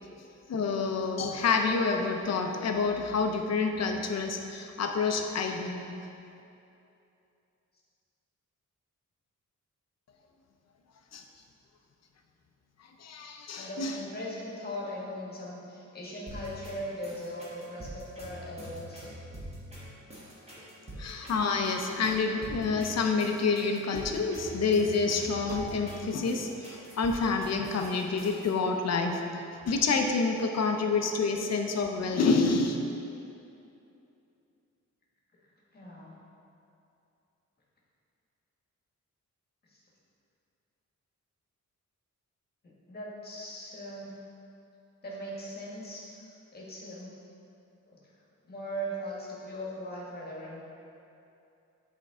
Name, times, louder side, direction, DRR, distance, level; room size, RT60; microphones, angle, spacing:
voice 1, 0.5-5.9 11.1-11.2 13.0-13.9 21.0-32.8, left 4 dB, 55° left, 4 dB, 0.6 m, -28 dB
voice 2, 13.5-19.1 20.6-21.0 35.3-35.4 35.7-36.1 39.6-39.8 42.6-44.1 45.0-47.2 47.9-48.0 48.4-50.6, equal, 30° left, -5 dB, 1.4 m, -40 dB
sound 1, 16.3-28.5, right 1 dB, 20° right, 1.4 m, -45 dB
9.2 x 4.5 x 3.6 m, 2.7 s
wide cardioid pair, 175°, 31 cm